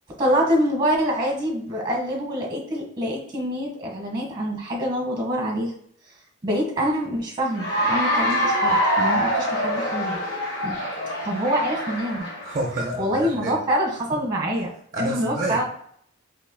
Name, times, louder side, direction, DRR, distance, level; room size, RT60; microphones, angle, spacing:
voice 1, 0.2-5.7 6.4-10.2 10.6-10.9 11.2-12.3 13.0-14.7 15.0-15.6, equal, 20° right, 0 dB, 1.1 m, -25 dB
Cheering / Applause, 7.5-12.7, equal, 50° left, 1.4 m, -24 dB
voice 2, 12.4-13.6 14.9-15.6, right 1 dB, 40° right, 1 dB, 0.5 m, -28 dB
4.4 x 3.0 x 2.2 m, 0.68 s
head